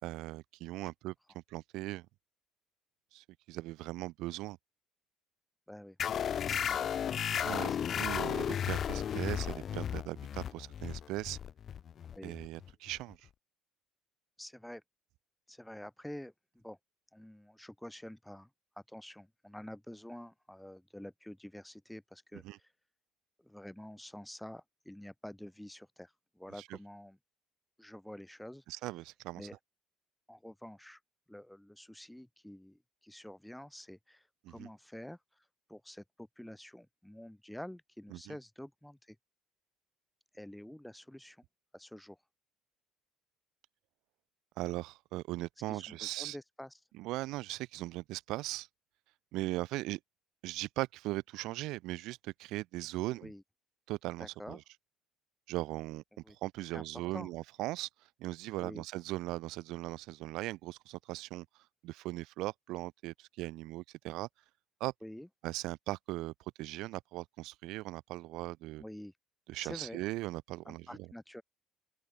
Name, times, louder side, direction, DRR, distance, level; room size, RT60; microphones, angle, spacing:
voice 1, 0.0-1.1 1.5-2.1 3.1-4.6 7.2-7.7 8.0-11.4 12.2-13.2 22.4-22.6 26.6-26.8 28.7-29.5 34.4-34.7 38.1-38.3 44.6-46.4 46.9-48.7 49.3-50.0 50.4-53.3 53.9-54.6 55.5-57.9 58.2-61.4 61.8-64.3 64.8-64.9 65.4-66.3 66.6-68.8 69.5-71.1, right 18 dB, 65° right, 3.4 m, -39 dB
sound 1, 6.0-13.1, left 8 dB, 35° left, 0.5 m, -34 dB
voice 2, 6.3-7.0 7.7-8.1 12.1-12.4 14.4-14.8 15.5-16.8 17.1-18.5 18.9-22.7 23.4-27.2 27.8-28.9 29.4-29.6 30.3-31.0 31.3-39.2 40.3-41.4 41.7-42.2 45.7-46.9 53.1-53.4 54.2-54.6 56.3-57.3 58.6-58.8 65.0-65.3 68.8-69.2 69.6-70.0 70.6-71.4, left 1 dB, ahead, 6.5 m, -48 dB
open air
cardioid pair, 170°, 0 cm